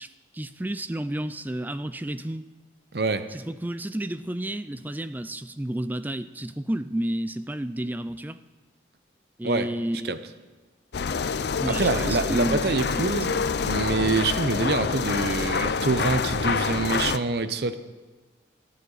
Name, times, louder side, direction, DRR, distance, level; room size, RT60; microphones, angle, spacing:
voice 1, 0.0-2.4 3.3-8.4 9.4-10.2 11.6-13.1, right 1 dB, 10° right, 13 dB, 0.3 m, -31 dB
voice 2, 2.9-3.3 9.4-9.7 10.0-10.2 11.7-13.4 13.6-17.8, right 3 dB, 60° right, 11 dB, 0.7 m, -25 dB
sound 1, 10.9-17.2, left 5 dB, 65° left, 0.5 m, -27 dB
24.5 x 8.5 x 4.0 m, 1.3 s
head